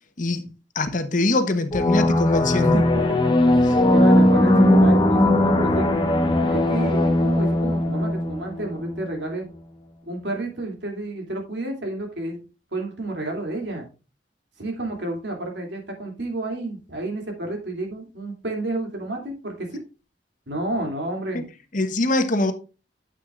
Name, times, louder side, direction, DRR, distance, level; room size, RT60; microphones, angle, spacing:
voice 1, 0.2-0.5 0.7-2.8 3.6-3.7 21.3-21.4 21.7-22.5, left 2 dB, 50° left, 1.0 m, -23 dB
sound 1, 1.7-9.1, left 1 dB, 30° left, 1.1 m, -19 dB
voice 2, 2.6-3.2 3.5-5.9 6.5-9.5 10.1-12.4 12.7-13.9 14.6-19.8 20.5-21.5, right 2 dB, 75° right, 2.7 m, -30 dB
9.2 x 8.1 x 2.5 m
head